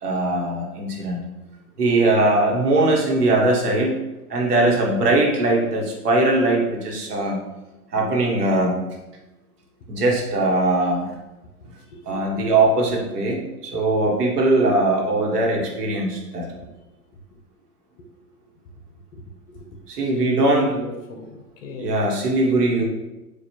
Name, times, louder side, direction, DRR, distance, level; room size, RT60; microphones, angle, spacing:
voice 1, 0.0-1.2 1.8-4.0 4.3-7.4 7.9-8.8 9.9-11.1 12.1-16.5 19.9-20.7 21.8-22.8, right 2 dB, 85° right, -1 dB, 1.1 m, -20 dB
voice 2, 20.1-22.0, left 3 dB, 55° left, 3 dB, 0.6 m, -36 dB
4.5 x 2.4 x 2.9 m, 1.0 s
hypercardioid pair, 140°, 46 cm